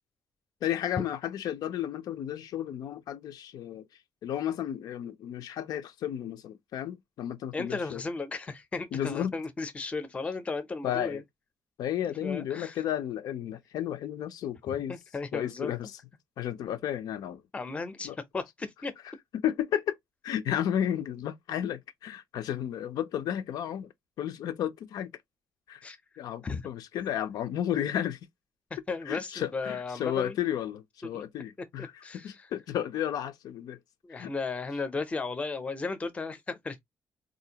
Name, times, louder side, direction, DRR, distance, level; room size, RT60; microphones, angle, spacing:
voice 1, 0.6-3.9 4.2-8.0 8.9-9.3 10.8-11.2 11.8-15.0 15.3-16.0 16.4-17.4 18.0-18.2 19.0-20.0 20.2-23.9 24.2-25.1 25.7-25.8 26.2-28.2 29.0-33.8 34.2-34.3 34.7-34.8, left 10 dB, 90° left, 0.6 m, -33 dB
voice 2, 7.5-11.2 12.2-12.7 14.7-15.7 17.5-18.9 25.8-26.0 26.4-26.7 28.9-30.4 31.0-31.2 31.8-32.3 34.0-36.8, left 4 dB, 20° left, 0.5 m, -35 dB
4.0 x 2.5 x 2.8 m
cardioid pair, 165°, 7 cm